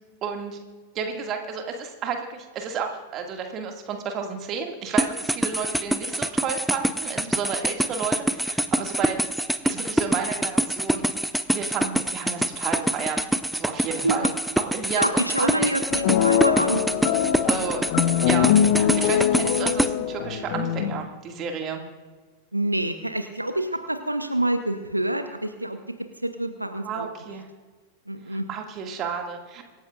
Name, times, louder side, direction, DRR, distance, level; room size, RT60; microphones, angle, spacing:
voice 1, 0.2-0.6 0.9-9.2 9.6-11.0 11.5-13.2 13.5-14.3 14.6-15.7 17.4-17.8 18.3-21.8 26.8-27.5 28.3-29.6, right 6 dB, 35° right, 3 dB, 2.2 m, -32 dB
sound 1, 5.0-19.9, right 1 dB, ahead, 0.6 m, -25 dB
voice 2, 14.9-16.8 22.5-25.8 26.2-27.1 28.1-28.4, right 1 dB, 85° right, 8 dB, 0.9 m, -26 dB
sound 2, 15.9-21.0, left 9 dB, 50° left, 1.1 m, -22 dB
25.5 x 14.0 x 2.5 m, 1.4 s
figure-of-eight pair, 90°, 0 cm